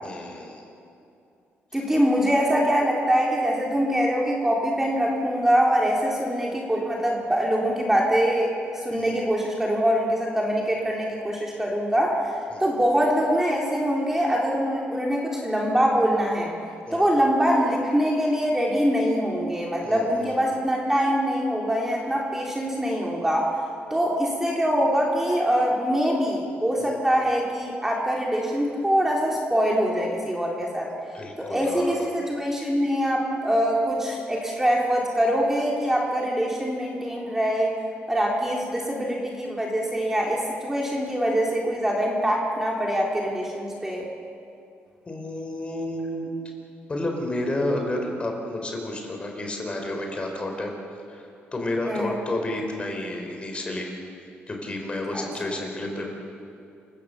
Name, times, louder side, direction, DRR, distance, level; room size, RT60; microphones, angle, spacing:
voice 1, 0.0-0.6 8.9-9.2 12.5-12.6 16.9-17.1 19.8-20.4 26.8-27.0 31.1-32.1 45.0-46.3 46.9-50.7 51.1-53.9 54.5-56.1, left 1 dB, 25° left, 2 dB, 4.6 m, -31 dB
voice 2, 1.7-12.2 12.6-16.5 16.9-23.5 23.9-30.9 31.4-37.7 38.1-44.0 51.9-52.1 55.1-55.2, equal, 10° right, -2 dB, 3.5 m, -24 dB
28.5 x 16.5 x 7.1 m, 2.6 s
cardioid pair, 115°, 4 cm